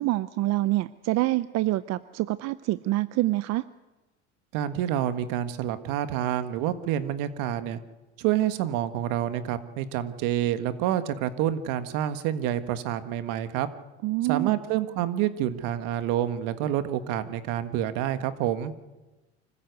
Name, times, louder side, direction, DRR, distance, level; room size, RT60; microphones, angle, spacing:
voice 1, 0.0-3.7 14.0-14.6, right 17 dB, 50° right, 15 dB, 0.6 m, -26 dB
voice 2, 4.5-7.8 8.2-13.7 14.2-18.7, right 11 dB, 65° right, 11 dB, 1.6 m, -28 dB
25.5 x 14.5 x 8.1 m, 1.1 s
supercardioid pair, 100°, 35 cm